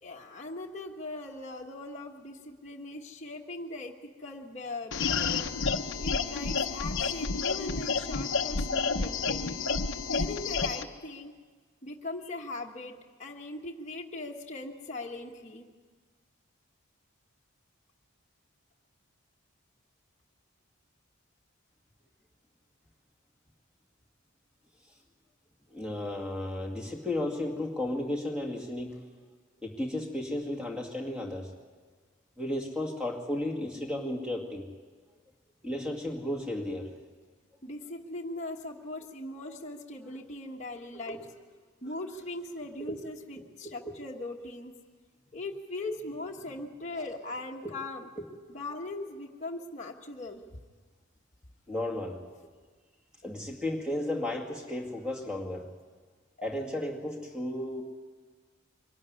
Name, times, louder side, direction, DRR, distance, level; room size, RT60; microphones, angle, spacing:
voice 1, 0.0-5.5 6.0-9.5 10.0-11.3 11.8-15.7 37.6-41.2 41.8-44.7 45.3-48.1 48.5-50.4 51.7-51.8 54.2-54.4, left 2 dB, 35° left, -1 dB, 1.3 m, -40 dB
sound 1, 4.9-10.8, left 4 dB, 65° left, 0.9 m, -30 dB
voice 2, 25.7-29.0 29.6-31.5 32.4-34.7 35.6-36.9 41.1-41.2 42.8-43.0 51.7-52.2 53.2-55.7 56.4-57.8, left 1 dB, 5° right, 1 dB, 2.2 m, -34 dB
23.5 x 13.0 x 9.8 m, 1.5 s
head